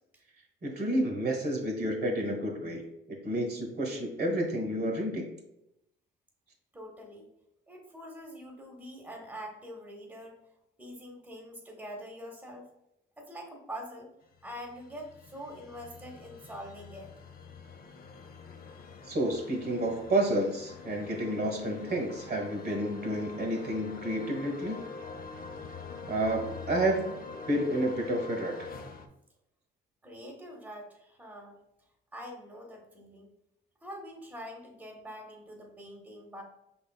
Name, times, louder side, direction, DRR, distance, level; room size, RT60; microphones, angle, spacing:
voice 1, 0.6-2.8 3.1-5.2 19.1-24.8 26.1-27.1 27.5-28.7, right 1 dB, 55° right, 1 dB, 1.3 m, -30 dB
voice 2, 6.7-7.3 7.7-10.4 10.8-12.7 13.2-14.1 14.4-17.1 30.0-31.6 32.1-33.3 33.8-36.4, equal, 10° right, 1 dB, 1.0 m, -44 dB
sound 1, 14.3-29.1, left 4 dB, 50° left, 0.6 m, -45 dB
5.1 x 3.9 x 2.3 m, 0.83 s
cardioid pair, 90°, 20 cm